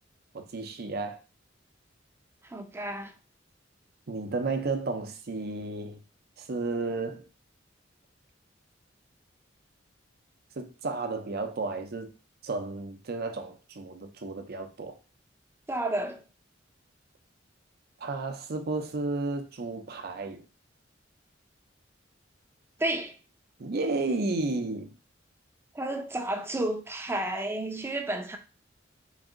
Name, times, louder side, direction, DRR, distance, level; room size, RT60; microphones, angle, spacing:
voice 1, 0.3-1.2 4.1-6.0 6.4-7.3 10.6-12.1 12.4-15.0 18.0-20.4 23.6-24.9, right 3 dB, 55° right, 0.6 m, -32 dB
voice 2, 2.4-3.1 15.7-16.2 22.8-23.1 25.7-28.4, right 1 dB, 15° right, 0.5 m, -31 dB
4.0 x 2.6 x 3.7 m
head